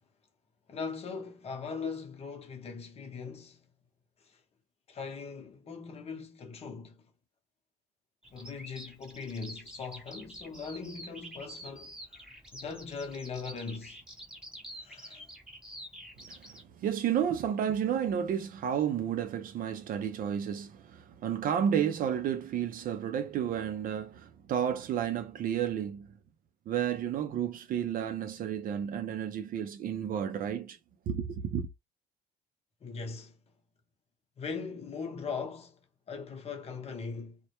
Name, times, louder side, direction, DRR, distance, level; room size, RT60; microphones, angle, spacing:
voice 1, 0.7-3.6 4.2-4.4 4.9-7.0 8.3-12.3 12.5-14.0 14.8-15.3 32.8-33.4 34.4-35.8 36.1-37.4, left 5 dB, 40° left, 0.8 m, -40 dB
Bird vocalization bird call bird song, 8.2-16.6, equal, 5° right, 0.7 m, -48 dB
voice 2, 16.3-26.1 26.7-30.8 31.1-31.7, right 9 dB, 55° right, 0.4 m, -31 dB
2.1 x 2.1 x 2.8 m
cardioid pair, 110°, 17 cm